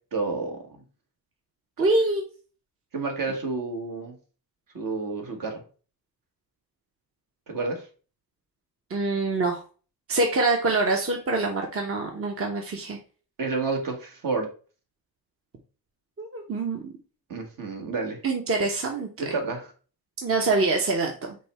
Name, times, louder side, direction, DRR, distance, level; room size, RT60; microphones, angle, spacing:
voice 1, 0.1-0.8 2.9-4.1 4.7-5.6 7.5-7.8 13.4-14.5 17.3-18.2 19.2-19.7, right 3 dB, 60° right, 2 dB, 1.3 m, -30 dB
voice 2, 1.8-2.2 8.9-9.6 10.1-13.0 16.2-16.9 18.2-19.1 20.2-21.4, right 3 dB, 35° right, 2 dB, 0.8 m, -25 dB
5.2 x 2.2 x 4.1 m, 0.37 s
cardioid pair, 90°, 38 cm